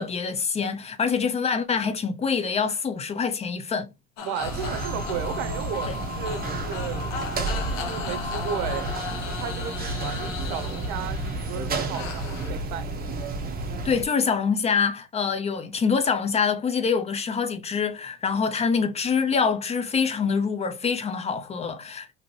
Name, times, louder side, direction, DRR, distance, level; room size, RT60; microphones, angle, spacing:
voice 1, 0.0-3.9 5.9-6.0 13.8-22.1, left 5 dB, 15° left, 0.4 m, -25 dB
sound 1, 4.2-12.5, left 6 dB, 70° left, 0.9 m, -36 dB
voice 2, 4.2-7.1 7.7-12.9, right 8 dB, 60° right, 0.7 m, -34 dB
sound 2, 4.4-14.1, right 2 dB, 25° right, 0.7 m, -31 dB
sound 3, 4.8-9.2, left 2 dB, 50° left, 1.3 m, -39 dB
2.7 x 2.5 x 2.9 m
hypercardioid pair, 90°, 40 cm